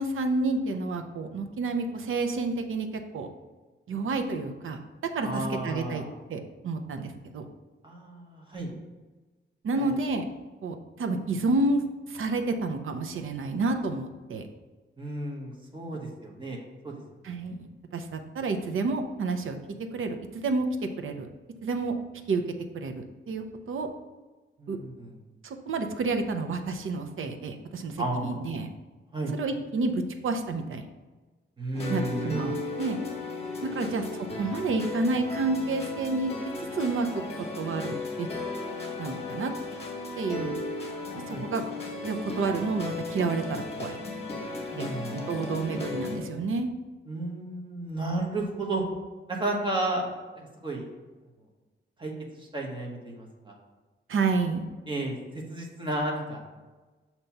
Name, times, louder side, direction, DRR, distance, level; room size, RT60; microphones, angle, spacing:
voice 1, 0.0-3.3 3.9-4.8 5.1-6.0 6.3-7.5 9.6-10.3 10.6-11.8 12.1-14.5 17.2-17.7 17.9-19.6 19.9-20.7 21.0-21.3 21.6-22.0 22.3-23.9 24.7-24.8 25.4-28.7 29.3-29.9 30.2-30.8 31.9-33.0 33.6-36.3 36.6-37.1 37.6-38.3 39.0-39.5 40.2-40.5 41.1-41.6 42.0-44.0 44.8-46.7 54.1-54.7, right 3 dB, 85° right, 6 dB, 0.6 m, -30 dB
voice 2, 5.2-6.1 7.8-8.7 9.8-9.9 15.0-16.6 16.8-16.9 24.6-25.2 28.0-28.4 29.1-29.3 31.6-32.4 33.7-33.9 41.3-41.4 44.7-45.3 47.1-48.8 49.3-50.0 50.3-50.9 52.0-53.5 54.9-56.4, right 2 dB, 25° right, -1 dB, 1.2 m, -33 dB
sound 1, 31.7-46.2, left 3 dB, 30° left, 1.2 m, -36 dB
6.5 x 2.9 x 5.7 m, 1.2 s
wide cardioid pair, 150°, 21 cm